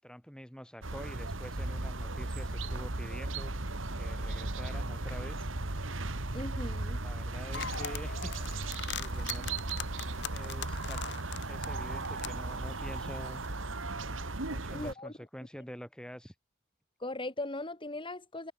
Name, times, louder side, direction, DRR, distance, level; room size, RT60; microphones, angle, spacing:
voice 1, 0.0-3.5 4.0-5.5 7.0-9.6 10.3-11.0 11.5-13.4 14.4-16.3, equal, 5° left, 8.0 m, -47 dB
sound 1, 0.8-14.9, right 2 dB, 80° right, 2.2 m, -36 dB
voice 2, 6.3-7.0 7.5-7.6 14.7-15.1 17.0-18.5, left 2 dB, 25° left, 4.2 m, -39 dB
sound 2, 7.5-13.5, left 8 dB, 60° left, 2.8 m, -42 dB
head